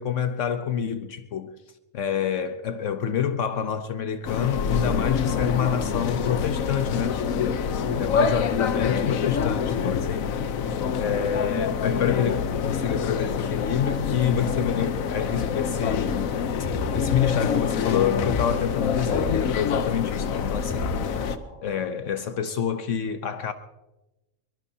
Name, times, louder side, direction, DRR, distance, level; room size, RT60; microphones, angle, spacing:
voice 1, 0.0-1.5 1.9-7.5 7.9-10.3 11.0-16.3 16.9-21.2 21.6-23.5, left 8 dB, 70° left, 1.1 m, -27 dB
sound 1, 4.2-21.4, left 6 dB, 90° left, 1.2 m, -26 dB
sound 2, 16.6-21.6, equal, 20° left, 4.3 m, -35 dB
23.0 x 21.0 x 2.8 m
omnidirectional pair, 1.4 m